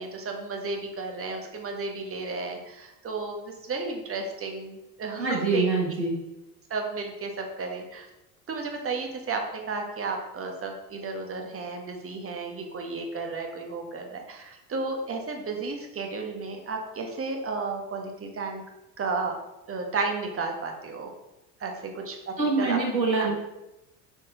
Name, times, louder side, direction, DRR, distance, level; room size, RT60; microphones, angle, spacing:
voice 1, 0.0-5.8 6.7-8.0 8.5-18.6 19.0-19.4 19.7-21.1 21.6-22.8 23.2-23.3, right 3 dB, 25° right, 2 dB, 1.6 m, -33 dB
voice 2, 5.2-6.2 22.4-23.3, right 3 dB, 90° right, -1 dB, 1.7 m, -25 dB
7.1 x 6.0 x 3.9 m, 0.96 s
figure-of-eight pair, 65°, 50 cm